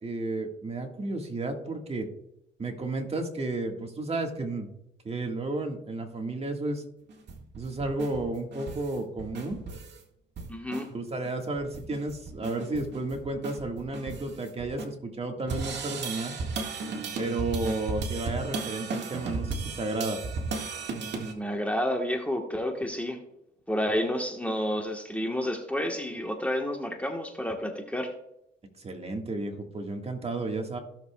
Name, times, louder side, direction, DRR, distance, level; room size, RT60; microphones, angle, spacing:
voice 1, 0.0-2.1 2.6-4.7 5.0-6.8 7.6-9.6 10.9-16.3 17.2-20.2 28.8-30.8, right 2 dB, 30° right, 3 dB, 1.7 m, -32 dB
sound 1, 7.1-10.0 10.4-10.9 11.2-11.3 11.6-14.8 15.5-21.3, right 4 dB, 60° right, 1.9 m, -35 dB
voice 2, 10.5-10.9 21.3-23.2 23.7-28.1, equal, 5° left, 2 dB, 1.3 m, -30 dB
16.0 x 6.8 x 2.3 m, 0.80 s
cardioid pair, 90°, 20 cm